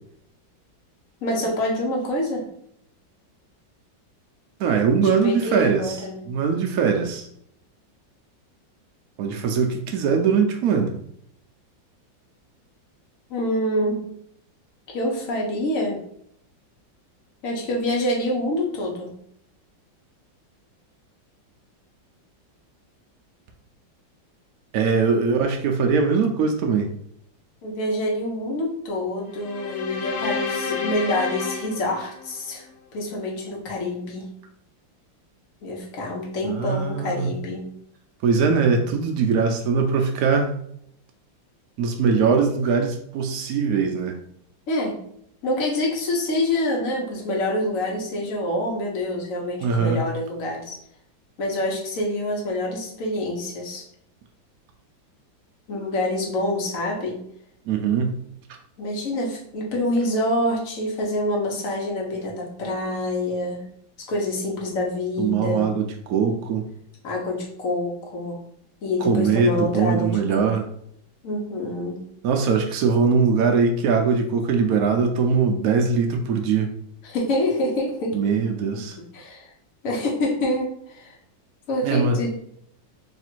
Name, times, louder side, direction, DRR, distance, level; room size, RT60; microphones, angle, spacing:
voice 1, 1.2-2.5 5.0-6.3 13.3-14.0 14.9-16.0 17.4-19.1 27.6-32.7 32.9-34.3 35.6-37.7 44.7-45.0 45.4-50.8 51.4-53.8 55.7-57.2 58.8-63.6 64.0-65.8 67.0-68.4 68.8-70.5 71.2-72.0 77.0-78.1 78.7-79.5 79.8-81.1 81.7-82.3, left 1 dB, 55° left, -1 dB, 1.1 m, -26 dB
voice 2, 4.6-6.0 6.3-7.3 9.2-10.9 24.7-26.9 36.5-37.3 38.2-40.5 41.8-44.2 49.6-50.0 57.7-58.2 65.2-66.7 69.0-70.7 72.2-76.7 78.1-79.0 81.8-82.2, right 5 dB, 85° right, 4 dB, 0.8 m, -21 dB
sound 1, 29.3-32.7, left 6 dB, 90° left, 1.4 m, -31 dB
3.3 x 2.5 x 4.4 m, 0.69 s
omnidirectional pair, 2.1 m